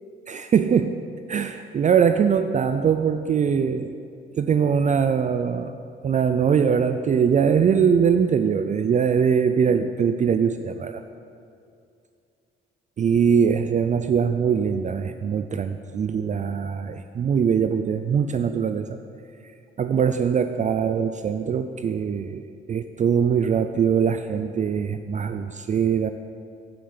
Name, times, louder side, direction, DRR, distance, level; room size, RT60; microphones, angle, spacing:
voice 1, 0.3-3.9 4.3-5.7 6.0-11.0 13.0-19.0 19.8-26.1, right 7 dB, 40° right, 9 dB, 0.4 m, -22 dB
14.5 x 5.6 x 5.0 m, 2.5 s
cardioid pair, 90°, 20 cm